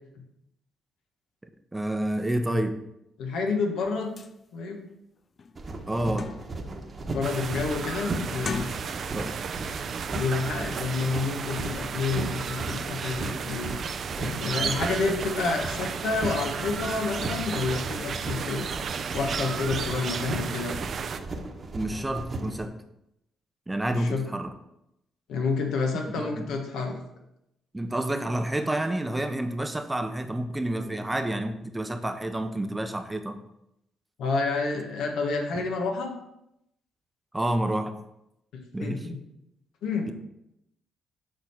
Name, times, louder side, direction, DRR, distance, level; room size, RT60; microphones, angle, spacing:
voice 1, 1.7-2.8 5.9-6.3 9.1-9.4 21.7-22.8 23.7-24.5 26.2-26.5 27.7-33.4 35.5-35.6 37.3-37.9 38.7-39.0, right 1 dB, 15° right, 7 dB, 0.7 m, -29 dB
voice 2, 3.2-4.1 4.5-4.9 7.1-9.0 10.1-13.7 14.2-18.7 19.1-20.8 23.9-24.2 25.3-27.0 34.2-36.1 38.8-39.2 39.8-40.1, left 4 dB, 85° left, 2 dB, 1.4 m, -29 dB
sound 1, 3.9-4.0 4.2-4.3 4.9-5.0 5.4-6.7 7.1-7.5 8.3-9.3 9.6-9.9, left 5 dB, 40° left, 0.4 m, -38 dB
sound 2, 5.6-22.7, right 2 dB, 35° right, 1.1 m, -37 dB
sound 3, 7.2-21.2, right 6 dB, 55° right, 0.5 m, -33 dB
7.1 x 3.8 x 5.9 m, 0.83 s
cardioid pair, 90°, 0 cm